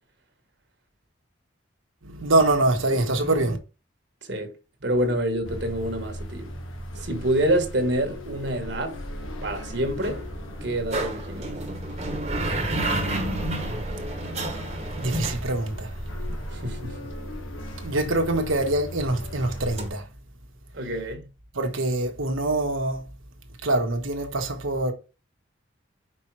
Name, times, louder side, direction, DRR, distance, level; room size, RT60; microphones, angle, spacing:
voice 1, 2.0-3.6 13.8-13.9 15.0-16.0 17.8-20.1 21.5-23.1 23.6-24.9, right 2 dB, 85° right, 1.3 m, -24 dB
voice 2, 4.2-4.5 4.8-6.5 6.9-9.0 9.4-10.2 10.6-11.6 16.5-17.1 20.7-21.3, right 1 dB, 55° right, 1.4 m, -27 dB
sound 1, 5.4-19.9, equal, 90° left, 1.3 m, -37 dB
sound 2, 9.2-16.8 19.8-19.9, right 2 dB, 35° right, 1.2 m, -31 dB
5.4 x 4.3 x 4.7 m
head